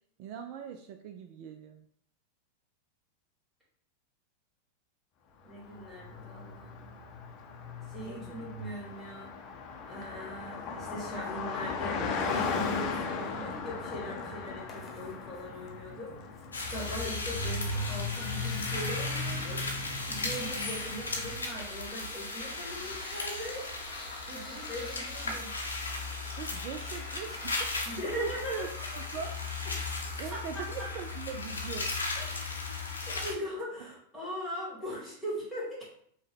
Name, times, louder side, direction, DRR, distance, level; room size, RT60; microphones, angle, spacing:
voice 1, 0.2-1.8 8.1-8.7 26.4-29.4 30.2-31.9, right 7 dB, 45° right, 5 dB, 0.3 m, -41 dB
voice 2, 5.4-6.9 7.9-9.3 9.9-16.4 16.7-19.6 20.1-23.6 24.3-25.5 27.8-28.7 30.3-30.9 32.1-35.8, equal, ahead, -7 dB, 1.6 m, -40 dB
Car passing by, 5.6-21.6, left 4 dB, 40° left, 0.6 m, -37 dB
sound 1, 14.3-14.4 14.7-15.6 16.1-16.2 16.3-30.3, left 2 dB, 20° left, 1.1 m, -50 dB
sound 2, 16.5-33.3, left 3 dB, 75° left, 0.7 m, -36 dB
5.2 x 2.2 x 3.5 m, 0.65 s
figure-of-eight pair, 90°, 0 cm